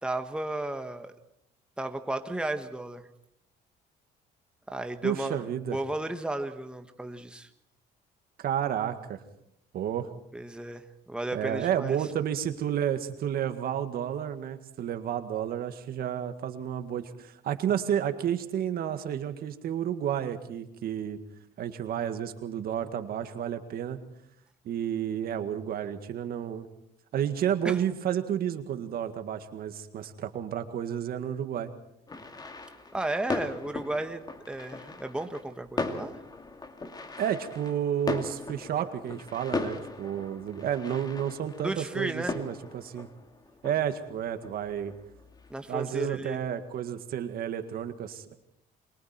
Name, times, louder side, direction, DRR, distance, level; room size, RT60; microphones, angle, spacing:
voice 1, 0.0-1.1 1.8-3.0 4.7-5.4 5.7-7.5 10.3-12.0 27.6-27.7 32.9-34.2 34.5-36.1 41.6-42.4 45.5-46.4, right 2 dB, 5° right, 7 dB, 1.4 m, -34 dB
voice 2, 5.0-5.8 8.4-9.2 9.7-10.1 11.3-21.2 21.6-24.0 24.7-26.7 27.1-31.7 37.2-43.1 43.6-44.9 45.7-48.3, right 9 dB, 60° right, 8 dB, 1.9 m, -31 dB
sound 1, 32.1-45.5, left 3 dB, 25° left, 2.4 m, -38 dB
29.0 x 23.5 x 4.5 m, 0.74 s
cardioid pair, 110°, 17 cm